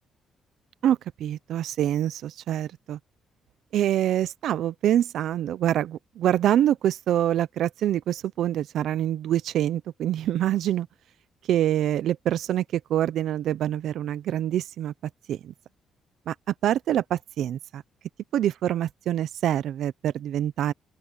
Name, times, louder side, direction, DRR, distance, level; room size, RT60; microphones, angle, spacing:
voice 1, 0.8-3.0 3.7-10.9 11.5-14.9 15.3-15.5 16.3-16.4 16.6-17.8 18.3-20.7, right 11 dB, 75° right, 0.7 m, -25 dB
open air
cardioid pair, 90°, 0 cm